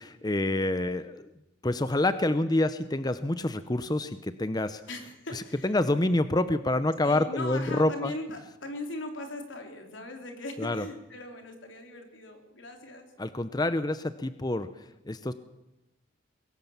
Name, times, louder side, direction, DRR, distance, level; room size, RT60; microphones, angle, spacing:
voice 1, 0.2-1.3 1.6-4.8 5.3-8.1 10.6-10.9 13.2-15.3, left 1 dB, 20° left, 12 dB, 0.7 m, -27 dB
voice 2, 4.9-5.7 7.0-13.1, left 2 dB, 80° left, 4 dB, 3.6 m, -39 dB
22.0 x 18.0 x 7.3 m, 0.94 s
head